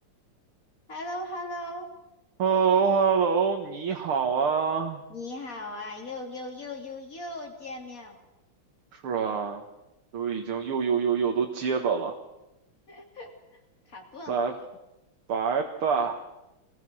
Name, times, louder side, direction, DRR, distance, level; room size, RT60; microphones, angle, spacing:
voice 1, 0.9-1.9 5.1-8.2 12.9-14.5, left 1 dB, 40° left, 3 dB, 3.6 m, -38 dB
voice 2, 2.4-5.0 8.9-9.6 10.1-12.1 14.3-14.5 15.3-16.2, right 6 dB, 85° right, 3 dB, 2.5 m, -25 dB
26.0 x 21.0 x 6.4 m, 0.93 s
omnidirectional pair, 2.4 m